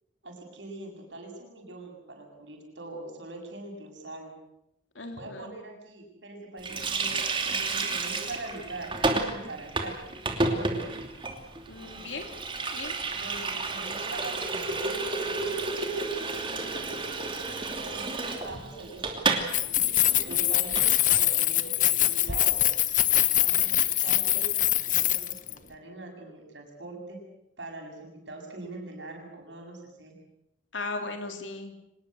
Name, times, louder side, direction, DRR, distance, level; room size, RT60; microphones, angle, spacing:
voice 1, 0.2-4.4 5.2-8.9 9.3-10.8 13.1-15.9 17.6-22.6 23.3-27.2 27.6-30.2, right 2 dB, 75° right, 2 dB, 7.4 m, -43 dB
voice 2, 4.9-5.5 11.7-12.3 12.7-12.9 16.4-17.0 30.7-31.7, left 3 dB, 90° left, 5 dB, 3.4 m, -37 dB
Water tap faucet, 6.6-19.5 19.8-19.9 20.2-20.9, right 3 dB, 25° right, 2.9 m, -31 dB
Keys jangling, 19.4-25.5, left 14 dB, 45° left, 1.1 m, -24 dB
25.5 x 20.0 x 7.9 m, 0.84 s
head